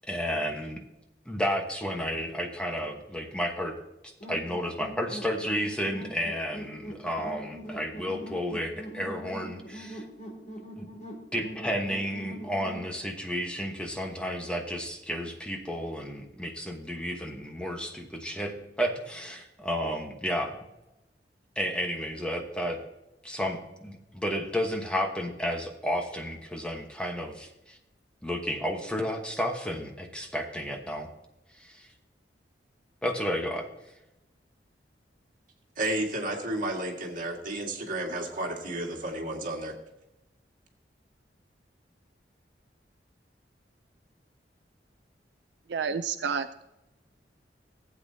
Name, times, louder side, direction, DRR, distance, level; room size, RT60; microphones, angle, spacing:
voice 1, 0.1-0.8 1.3-3.8 4.0-10.0 10.8-10.9 11.3-20.6 21.6-22.8 23.2-27.8 28.2-31.1 31.6-31.9 33.0-33.7, equal, 5° left, 2 dB, 1.1 m, -32 dB
sound 1, 4.2-12.9, right 1 dB, 45° left, 2.5 m, -42 dB
voice 2, 35.8-39.8, right 1 dB, 50° right, 1 dB, 1.9 m, -32 dB
voice 3, 45.7-46.6, right 6 dB, 75° right, 9 dB, 0.4 m, -30 dB
15.5 x 8.4 x 2.7 m, 0.94 s
head